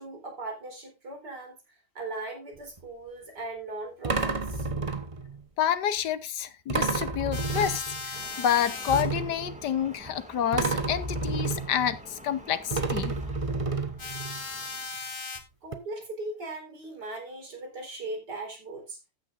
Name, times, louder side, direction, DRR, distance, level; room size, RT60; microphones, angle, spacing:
voice 1, 0.0-1.5 1.9-4.7 15.6-19.0, right 2 dB, 80° right, 4.6 m, -38 dB
sound 1, 2.6-2.8 4.0-5.4 6.7-8.2 8.9-10.1 10.5-12.4 12.7-14.4 15.4-15.5 15.7-15.8, right 3 dB, 25° right, 0.9 m, -31 dB
voice 2, 5.6-13.2, left 9 dB, 85° left, 1.5 m, -29 dB
sound 2, 7.3-9.0 14.0-15.4, left 4 dB, 35° left, 1.6 m, -37 dB
sound 3, 8.1-14.9, equal, 5° right, 2.1 m, -49 dB
14.5 x 9.9 x 2.6 m
omnidirectional pair, 1.8 m